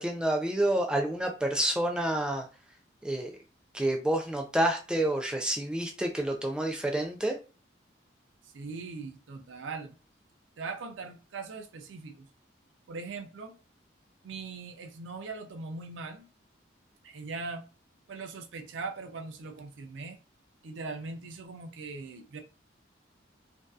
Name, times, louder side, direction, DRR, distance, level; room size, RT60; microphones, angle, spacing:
voice 1, 0.0-2.5 3.0-3.3 3.7-7.4, right 1 dB, 5° right, 0.4 m, -28 dB
voice 2, 8.4-10.0 10.6-12.3 12.9-13.6 14.2-16.3 17.0-17.7 18.1-20.2 20.6-22.4, right 4 dB, 85° right, 0.5 m, -40 dB
2.6 x 2.3 x 2.3 m
head